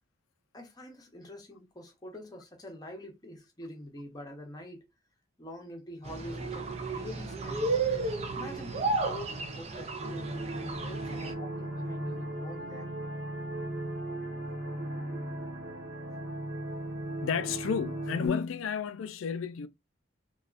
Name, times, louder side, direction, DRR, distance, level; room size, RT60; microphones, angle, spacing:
voice 1, 0.5-4.8 5.4-7.8 8.3-12.9, left 1 dB, 20° left, 0.7 m, -45 dB
sound 1, 6.0-11.3, right 3 dB, 35° right, 0.4 m, -33 dB
sound 2, 10.0-18.3, right 1 dB, 60° right, 1.1 m, -37 dB
voice 2, 17.2-19.7, left 6 dB, 85° left, 0.4 m, -31 dB
3.4 x 2.3 x 2.4 m
head